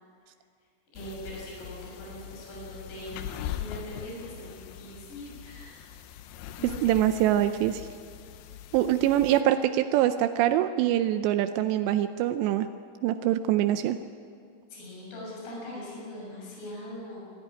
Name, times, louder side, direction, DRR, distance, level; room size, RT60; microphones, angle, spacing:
voice 1, 0.9-3.3 3.5-5.9 6.6-6.9 14.7-17.3, equal, 60° left, -4 dB, 8.6 m, -41 dB
sound 1, 1.0-9.4, left 11 dB, 80° left, 2.3 m, -41 dB
voice 2, 6.8-7.9 8.7-12.7 13.0-14.0, right 12 dB, 85° right, 9 dB, 2.5 m, -24 dB
27.0 x 13.5 x 10.0 m, 2.3 s
omnidirectional pair, 5.6 m